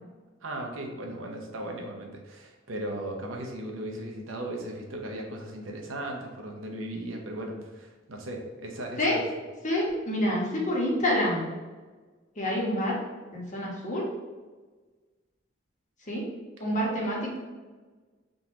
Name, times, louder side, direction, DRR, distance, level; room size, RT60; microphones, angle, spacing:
voice 1, 0.4-9.2, right 1 dB, 90° right, 1 dB, 0.8 m, -37 dB
voice 2, 9.6-11.4 12.4-13.0 13.3-14.0 16.1-16.2 16.6-17.4, left 1 dB, 40° left, -4 dB, 1.2 m, -27 dB
3.8 x 3.0 x 3.7 m, 1.3 s
head